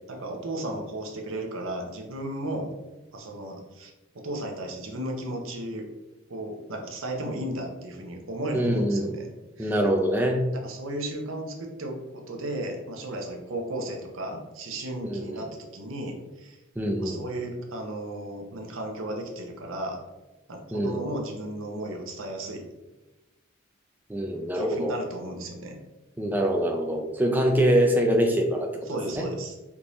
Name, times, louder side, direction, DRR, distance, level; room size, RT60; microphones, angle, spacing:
voice 1, 0.1-2.7 3.1-5.9 6.3-9.3 9.6-9.8 10.5-16.6 17.0-20.0 20.5-22.6 24.5-25.8 28.9-29.6, right 1 dB, 75° right, 2 dB, 0.7 m, -34 dB
voice 2, 8.5-9.1 9.6-10.4 15.0-15.5 16.8-17.2 20.7-21.1 24.1-24.9 26.2-28.9 29.2-29.3, equal, 10° right, 1 dB, 0.3 m, -24 dB
3.5 x 2.7 x 2.9 m, 1.1 s
head